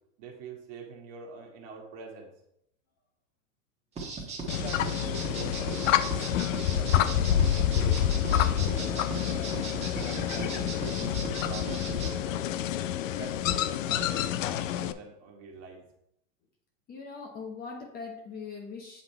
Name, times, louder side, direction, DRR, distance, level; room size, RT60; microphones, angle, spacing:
voice 1, 0.2-2.3 4.6-6.4 6.8-9.6 10.0-11.0 11.5-12.5 13.2-15.8, right 4 dB, 35° right, 0 dB, 1.6 m, -45 dB
sound 1, 4.0-12.1, right 4 dB, 15° right, 1.4 m, -37 dB
sound 2, 4.5-14.9, left 11 dB, 65° left, 0.6 m, -28 dB
voice 2, 16.9-19.0, left 5 dB, 20° left, 1 dB, 1.0 m, -41 dB
8.0 x 3.9 x 4.5 m, 0.76 s
supercardioid pair, 140°, 41 cm